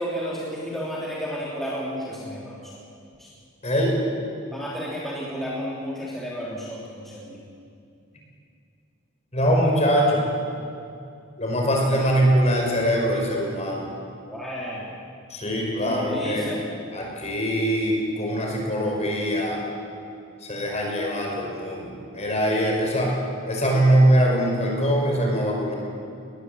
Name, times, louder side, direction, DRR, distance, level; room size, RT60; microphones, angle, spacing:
voice 1, 0.0-2.6 3.2-3.3 4.5-7.4 14.3-14.9 15.8-16.6, equal, ahead, -6 dB, 3.3 m, -32 dB
voice 2, 3.6-4.0 9.3-10.2 11.4-13.9 15.3-16.5 16.9-19.6 20.4-23.2 23.4-25.7, equal, 30° left, 0 dB, 5.2 m, -22 dB
20.5 x 20.0 x 8.0 m, 2.5 s
head